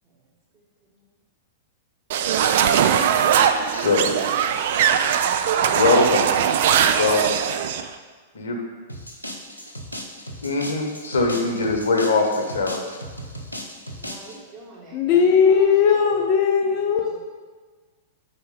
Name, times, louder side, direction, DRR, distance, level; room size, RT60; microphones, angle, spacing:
voice 1, 0.0-1.1 13.9-15.7 16.0-16.3 16.9-17.2, right 3 dB, 30° right, -4 dB, 1.7 m, -45 dB
sound 1, 2.1-7.8, right 8 dB, 55° right, 0.3 m, -20 dB
voice 2, 3.7-4.1 5.7-6.3 7.0-7.5 8.3-8.6 10.4-13.0, left 3 dB, 70° left, 2 dB, 0.9 m, -22 dB
sound 2, 8.9-14.4, equal, 90° left, 0.7 m, -37 dB
voice 3, 14.9-17.2, left 6 dB, 40° left, 2 dB, 0.6 m, -19 dB
4.8 x 4.2 x 5.2 m, 1.4 s
figure-of-eight pair, 100°, 0 cm